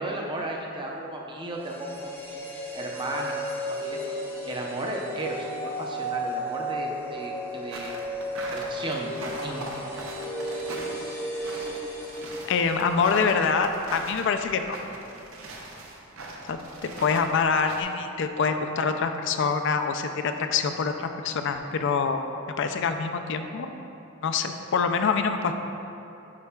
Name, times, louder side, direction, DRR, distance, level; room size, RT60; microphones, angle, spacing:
voice 1, 0.0-3.5 3.8-4.0 4.4-8.0 8.5-9.6, right 2 dB, 20° right, -1 dB, 0.6 m, -34 dB
sound 1, 1.5-13.6 13.9-14.0, equal, 10° left, 0.8 m, -34 dB
sound 2, 7.7-17.8, right 2 dB, 75° right, 0.7 m, -40 dB
voice 2, 12.5-14.8 16.5-22.2 22.6-23.8 24.2-25.5, left 5 dB, 60° left, 7 dB, 0.4 m, -25 dB
9.5 x 4.7 x 2.3 m, 2.9 s
head